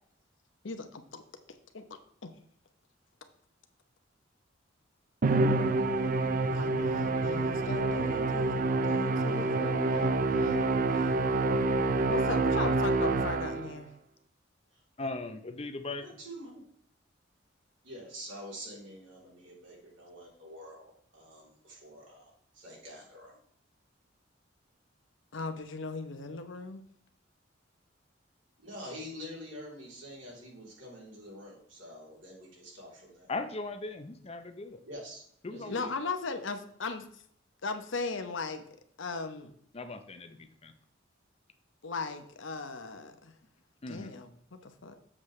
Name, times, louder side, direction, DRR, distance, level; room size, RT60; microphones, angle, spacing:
voice 1, 0.6-1.2 1.5-2.3 6.5-8.6 8.8-11.2 12.1-13.9 25.3-26.8 35.7-37.2 37.6-38.6 39.0-39.5 41.8-43.3 43.9-45.0, left 3 dB, 75° left, 7 dB, 0.9 m, -38 dB
Musical instrument, 5.2-13.8, right 2 dB, 45° right, 0.4 m, -27 dB
voice 2, 15.0-16.1 33.3-34.8 35.4-36.0 39.7-40.7 43.8-44.1, left 3 dB, 30° left, 8 dB, 0.7 m, -39 dB
voice 3, 16.0-16.6 17.8-23.3 28.6-33.3 34.9-35.2 35.5-35.9, equal, 75° right, -4 dB, 3.4 m, -46 dB
7.4 x 6.6 x 3.2 m, 0.65 s
head